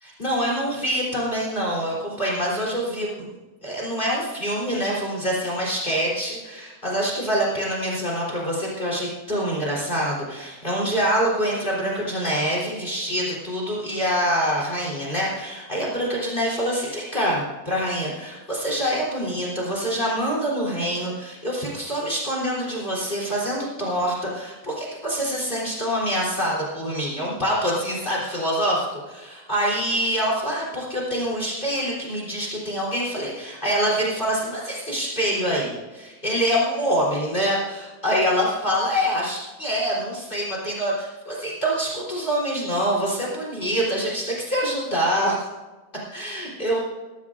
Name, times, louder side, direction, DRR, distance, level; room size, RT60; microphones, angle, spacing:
voice 1, 0.2-3.3 3.6-45.4 46.1-46.8, equal, 25° left, -3 dB, 3.9 m, -25 dB
21.0 x 14.0 x 2.6 m, 1.2 s
omnidirectional pair, 2.1 m